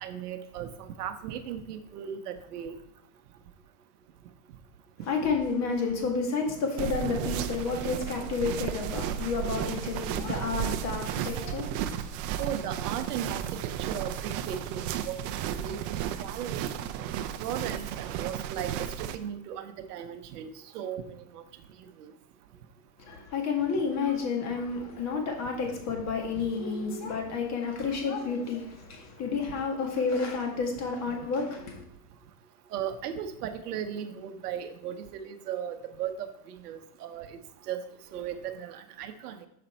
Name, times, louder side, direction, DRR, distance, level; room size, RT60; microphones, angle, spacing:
voice 1, 0.0-2.8 6.5-6.6 12.4-15.8 16.2-16.7 17.1-21.4 32.7-36.3 36.6-37.4 37.7-37.8 38.1-39.5, right 9 dB, 80° right, 0.9 m, -37 dB
voice 2, 5.1-12.0 23.0-31.8, left 5 dB, 35° left, 1.8 m, -30 dB
sound 1, 6.8-19.2, right 10 dB, 45° right, 0.6 m, -33 dB
6.8 x 5.1 x 4.3 m
supercardioid pair, 125°, 47 cm